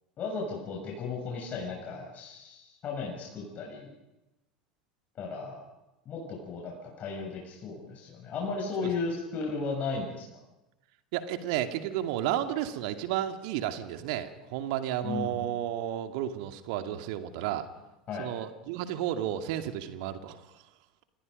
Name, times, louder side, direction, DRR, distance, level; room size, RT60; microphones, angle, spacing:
voice 1, 0.2-3.9 5.2-5.6 6.1-10.2 15.0-15.5 18.1-18.3, left 4 dB, 35° left, -2 dB, 7.0 m, -35 dB
voice 2, 11.1-17.7 18.2-20.4, right 11 dB, 55° right, 7 dB, 2.3 m, -32 dB
30.0 x 25.0 x 5.4 m, 1.0 s
figure-of-eight pair, 80°, 4 cm